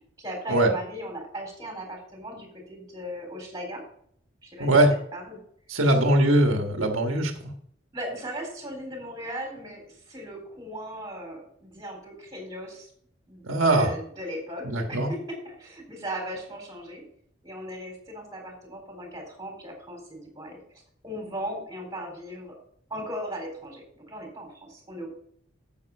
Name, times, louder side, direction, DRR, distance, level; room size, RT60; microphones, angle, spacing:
voice 1, 0.2-3.8 4.4-5.4 5.8-6.0 7.9-12.9 13.3-17.0 17.4-22.6 22.9-25.1, equal, 15° right, 1 dB, 3.9 m, -38 dB
voice 2, 4.6-4.9 5.7-7.3 13.4-13.9 14.6-15.1, right 1 dB, 90° right, 3 dB, 1.5 m, -21 dB
9.5 x 8.0 x 5.4 m, 0.66 s
head